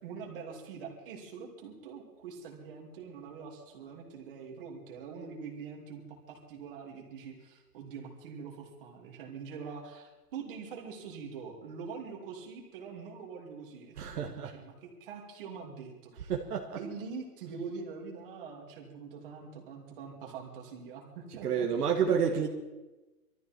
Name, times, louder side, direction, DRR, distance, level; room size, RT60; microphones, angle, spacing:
voice 1, 0.0-16.3 16.7-21.7 22.1-22.5, right 5 dB, 35° right, 2.9 m, -44 dB
voice 2, 14.0-14.5 16.3-16.9 21.4-22.5, right 7 dB, 65° right, 1.9 m, -29 dB
22.0 x 13.5 x 4.5 m
hypercardioid pair, 170°, 49 cm